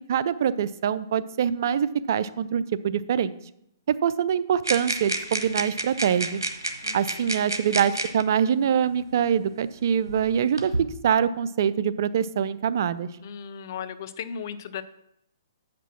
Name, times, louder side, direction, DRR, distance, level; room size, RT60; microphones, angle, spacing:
voice 1, 0.1-3.3 3.9-6.4 6.9-13.1, right 8 dB, 55° right, 15 dB, 0.4 m, -24 dB
sound 1, 4.6-8.2 9.2-9.3 10.1-10.8, right 2 dB, 90° right, 1.1 m, -30 dB
voice 2, 6.8-7.3 13.2-14.8, left 7 dB, 55° left, 14 dB, 0.6 m, -36 dB
8.2 x 6.0 x 5.9 m, 0.77 s
hypercardioid pair, 125°, 2 cm